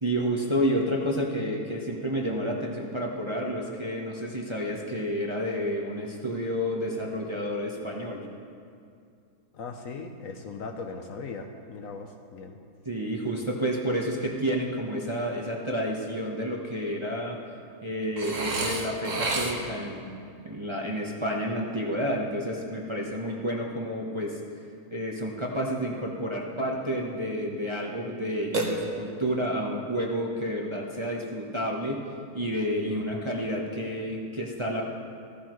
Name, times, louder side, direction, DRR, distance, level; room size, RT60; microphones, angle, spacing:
voice 1, 0.0-8.3 12.8-17.4 17.8-20.1 20.4-24.4 24.9-32.0 32.3-34.8, equal, 20° right, -2 dB, 0.9 m, -30 dB
voice 2, 9.5-12.6 32.8-33.2, left 4 dB, 65° left, 4 dB, 1.0 m, -39 dB
Burping eructation, 18.2-19.9 28.5-29.3, right 2 dB, 55° right, 1.5 m, -30 dB
15.0 x 14.0 x 3.1 m, 2.4 s
omnidirectional pair, 1.7 m